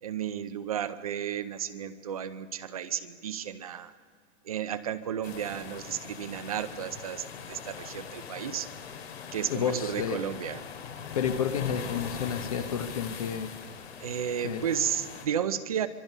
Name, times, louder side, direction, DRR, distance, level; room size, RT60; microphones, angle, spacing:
voice 1, 0.0-3.9 4.4-8.7 9.3-10.6 14.0-15.9, right 9 dB, 30° right, 11 dB, 0.6 m, -33 dB
sound 1, 5.2-15.3, left 7 dB, 55° left, 2.7 m, -41 dB
voice 2, 9.5-10.3 11.1-13.5 14.4-14.6, left 7 dB, 30° left, 9 dB, 0.8 m, -30 dB
24.5 x 23.0 x 5.5 m, 2.2 s
hypercardioid pair, 180°, 37 cm